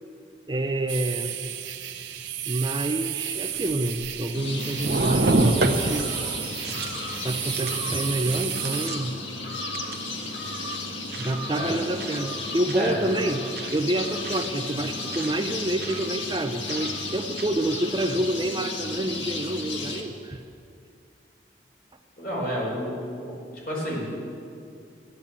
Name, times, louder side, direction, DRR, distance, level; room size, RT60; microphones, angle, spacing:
voice 1, 0.5-1.4 2.5-6.1 7.2-9.2 11.2-20.4, right 1 dB, 25° right, 6 dB, 0.5 m, -28 dB
sound 1, 0.9-8.9, right 12 dB, 90° right, 0.9 m, -33 dB
sound 2, 3.5-4.4 4.8-6.1 6.5-7.2 7.6-7.8 8.2-9.2 9.7-10.1 11.1-11.3 12.0-12.2 12.7-12.9 13.5-13.8 14.2-14.5 15.1-15.3 15.8-16.0 16.7-16.9 17.4-17.5, right 2 dB, 60° right, 0.9 m, -28 dB
sound 3, 4.3-20.0, left 2 dB, 90° left, 1.7 m, -34 dB
voice 2, 22.2-23.4 23.6-24.1, equal, 55° left, -4 dB, 4.7 m, -30 dB
13.5 x 11.0 x 7.4 m, 2.5 s
head